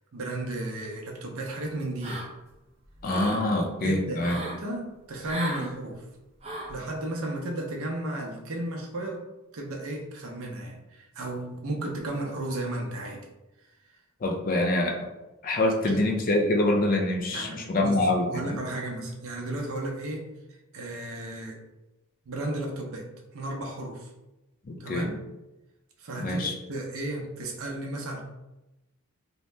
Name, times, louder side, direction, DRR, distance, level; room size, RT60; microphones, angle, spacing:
voice 1, 0.1-2.3 3.8-6.0 6.7-9.2 9.5-13.2 15.8-16.0 17.3-18.0 18.3-20.2 20.7-21.6 22.3-23.1 23.3-24.1 24.8-25.2 26.0-28.2, right 1 dB, 75° right, 1 dB, 0.6 m, -34 dB
sound 1, 2.0-2.5 2.9-3.4 4.2-4.6 5.2-5.7 6.4-6.8, right 2 dB, 30° right, 0.4 m, -35 dB
voice 2, 3.0-4.4 14.2-15.1 15.4-18.6 24.7-25.1 26.2-26.6, left 1 dB, 40° left, 2 dB, 0.4 m, -25 dB
2.7 x 2.1 x 3.2 m, 0.99 s
head